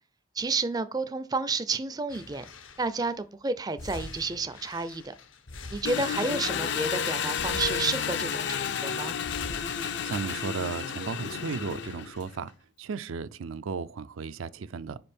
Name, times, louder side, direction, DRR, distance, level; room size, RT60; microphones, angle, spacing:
voice 1, 0.4-2.5 2.8-5.1 5.7-9.2, right 3 dB, 20° right, 0.4 m, -31 dB
sound 1, 2.1-3.1 3.8-6.8 7.3-8.7 9.2-10.6 11.0-11.1, left 2 dB, 80° left, 0.9 m, -44 dB
Engine, 5.8-12.3, left 7 dB, 60° left, 0.4 m, -31 dB
voice 2, 10.0-12.5 12.8-15.0, right 5 dB, 85° right, 0.4 m, -35 dB
5.3 x 5.2 x 4.3 m
head